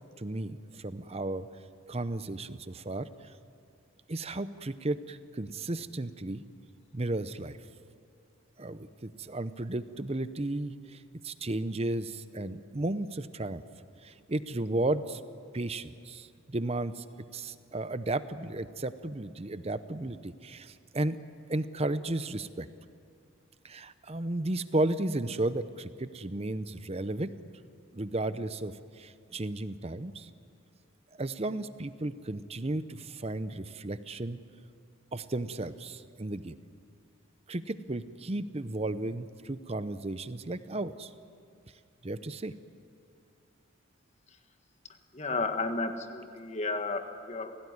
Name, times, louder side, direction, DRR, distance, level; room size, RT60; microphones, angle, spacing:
voice 1, 0.2-1.5 1.9-3.1 4.1-6.4 6.9-7.6 8.6-13.6 14.0-15.2 15.5-17.0 17.3-21.2 21.5-22.7 23.6-27.3 27.9-30.3 31.2-34.4 35.1-36.6 37.5-41.1 42.0-42.5, right 2 dB, 30° right, 13 dB, 0.7 m, -34 dB
voice 2, 45.1-47.6, left 3 dB, 30° left, 6 dB, 1.6 m, -33 dB
27.0 x 17.5 x 9.7 m, 2.3 s
head